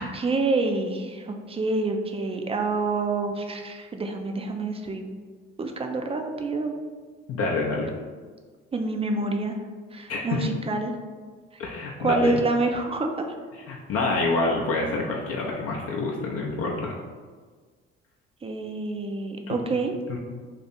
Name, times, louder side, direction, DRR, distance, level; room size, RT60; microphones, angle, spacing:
voice 1, 0.0-5.0 5.6-6.7 8.7-9.6 9.9-10.9 11.5-11.6 12.0-13.3 18.4-19.9, right 3 dB, 20° right, 4 dB, 0.4 m, -27 dB
voice 2, 7.3-7.9 10.1-10.4 11.6-12.4 13.7-17.0 19.5-19.6 20.1-20.2, left 3 dB, 45° left, -1 dB, 0.6 m, -27 dB
2.6 x 2.6 x 4.2 m, 1.5 s
figure-of-eight pair, 45°, 32 cm